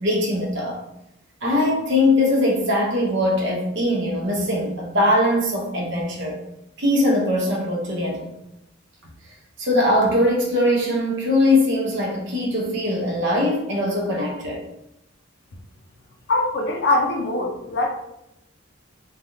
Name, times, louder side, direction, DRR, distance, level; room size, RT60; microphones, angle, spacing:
voice 1, 0.0-0.8 1.4-6.4 6.8-8.3 9.6-14.6, left 1 dB, 60° right, -1 dB, 0.8 m, -21 dB
voice 2, 16.3-17.9, left 2 dB, 55° left, 0 dB, 0.5 m, -22 dB
3.4 x 2.3 x 2.7 m, 0.84 s
head